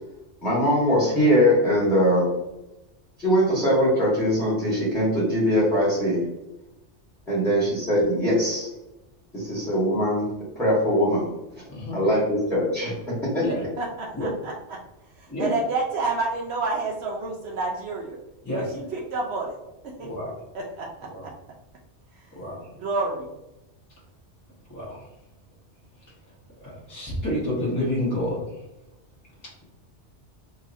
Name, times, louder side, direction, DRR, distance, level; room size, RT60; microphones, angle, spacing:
voice 1, 0.4-2.3 3.2-6.2 7.3-8.7 9.3-10.2 10.6-11.2 11.9-12.9 13.3-13.4, equal, ahead, -8 dB, 1.2 m, -21 dB
voice 2, 11.7-12.0 13.4-13.6 14.1-14.3 15.3-15.5 18.4-18.7 20.0-20.3 21.1-21.3 22.3-22.7 24.7-25.1 26.6-28.6, left 1 dB, 20° left, -5 dB, 0.9 m, -29 dB
voice 3, 13.8-14.8 15.2-18.2 18.5-19.6 20.0-20.1 20.5-20.9 22.8-23.3, right 3 dB, 70° right, -2 dB, 0.8 m, -29 dB
3.9 x 2.8 x 2.6 m, 0.95 s
omnidirectional pair, 1.2 m